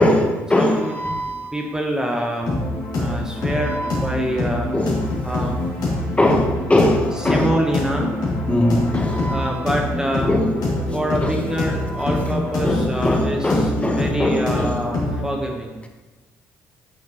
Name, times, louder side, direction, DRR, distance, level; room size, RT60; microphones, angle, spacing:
voice 1, 0.0-1.5 3.7-4.0 4.7-5.0 6.2-7.5 8.5-9.5 10.3-10.8 11.2-11.4 11.9-12.1 12.6-14.7, left 1 dB, 15° left, 2 dB, 1.2 m, -21 dB
voice 2, 0.5-1.0 1.5-2.5 2.9-4.7 5.2-5.5 7.2-8.1 9.3-10.3 10.9-15.8, right 1 dB, 10° right, 0 dB, 1.0 m, -25 dB
sound 1, 2.5-15.3, left 2 dB, 65° left, 2.4 m, -25 dB
8.3 x 6.3 x 3.0 m, 1.3 s
hypercardioid pair, 55°, 7 cm